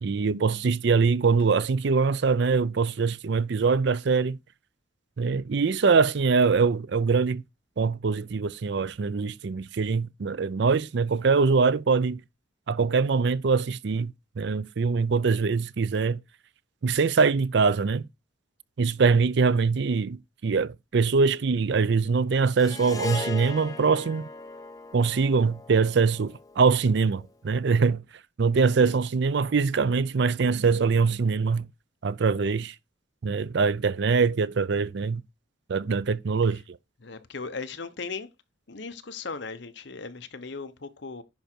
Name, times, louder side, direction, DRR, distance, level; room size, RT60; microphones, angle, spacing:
voice 1, 0.0-4.4 5.2-7.4 7.8-12.2 12.7-16.2 16.8-18.0 18.8-24.3 24.9-28.0 28.4-31.7 32.0-32.7 33.2-35.2 35.7-36.8, right 5 dB, 55° right, 0.4 m, -23 dB
Harp, 22.6-27.0, left 2 dB, 20° left, 0.9 m, -38 dB
voice 2, 28.5-29.0 37.0-38.3 38.7-41.2, left 4 dB, 55° left, 0.9 m, -37 dB
10.5 x 5.0 x 4.5 m
head